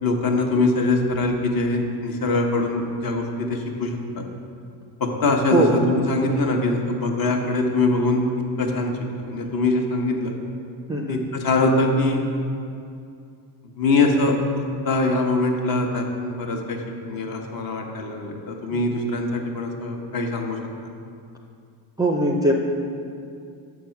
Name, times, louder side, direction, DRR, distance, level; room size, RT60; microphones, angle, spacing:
voice 1, 0.0-4.2 5.0-8.2 8.6-10.4 11.1-12.2 13.8-14.4 14.8-20.6, left 2 dB, 50° left, 2 dB, 1.1 m, -23 dB
voice 2, 10.9-11.2 18.7-18.8 22.0-22.5, right 1 dB, 10° right, -1 dB, 0.4 m, -21 dB
6.4 x 4.6 x 5.7 m, 2.5 s
cardioid pair, 100°, 45 cm